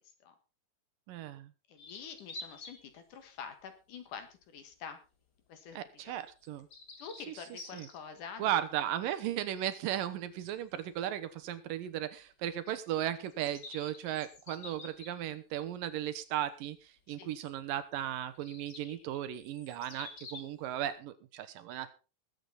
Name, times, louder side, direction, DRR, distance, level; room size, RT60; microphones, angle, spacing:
voice 1, 1.1-1.5 5.8-6.7 7.3-7.9 8.4-21.9, right 11 dB, 75° right, 12 dB, 2.6 m, -36 dB
voice 2, 1.7-5.0 5.5-6.2 7.0-8.5 17.1-17.3, left 6 dB, 65° left, 8 dB, 3.1 m, -47 dB
sound 1, 1.8-2.9 3.4-3.6 4.4-4.6 6.4-8.0 10.4-10.5 10.8-10.9 13.2-15.6 17.4-17.5 18.3-20.5, left 3 dB, 35° left, 2.0 m, -49 dB
20.0 x 8.1 x 4.2 m, 0.32 s
omnidirectional pair, 4.1 m